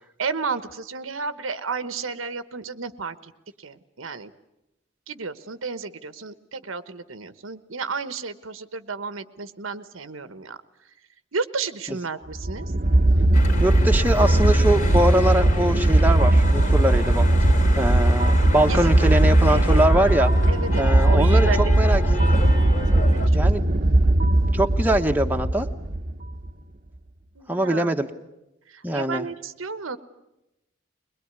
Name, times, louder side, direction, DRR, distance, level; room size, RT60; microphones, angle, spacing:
voice 1, 0.2-3.2 3.6-4.3 5.1-10.6 11.3-12.7 18.7-19.8 20.5-22.7 23.1-23.4 27.4-27.9 28.7-30.0, right 4 dB, 90° right, 13 dB, 1.1 m, -32 dB
sound 1, 12.3-26.5, right 1 dB, 40° right, 0.9 m, -19 dB
Church bell / Traffic noise roadway noise, 13.3-23.3, left 1 dB, 40° left, 2.6 m, -31 dB
voice 2, 13.6-17.3 17.7-20.3 20.8-21.5 21.8-22.5 23.3-23.6 24.5-25.7 27.5-28.1 28.8-29.3, right 1 dB, 10° right, 4 dB, 1.1 m, -23 dB
22.0 x 21.5 x 9.6 m, 0.92 s
head